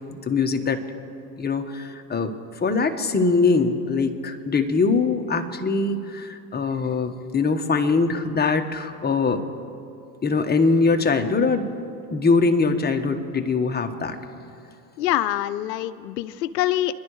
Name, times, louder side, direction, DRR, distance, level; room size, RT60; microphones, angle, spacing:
voice 1, 0.1-0.8 1.4-9.4 10.2-11.7 12.1-14.2, left 4 dB, 20° left, 5 dB, 1.3 m, -22 dB
voice 2, 15.0-16.9, left 13 dB, 80° left, 13 dB, 0.8 m, -25 dB
29.5 x 11.5 x 3.2 m, 2.5 s
hypercardioid pair, 85°, 48 cm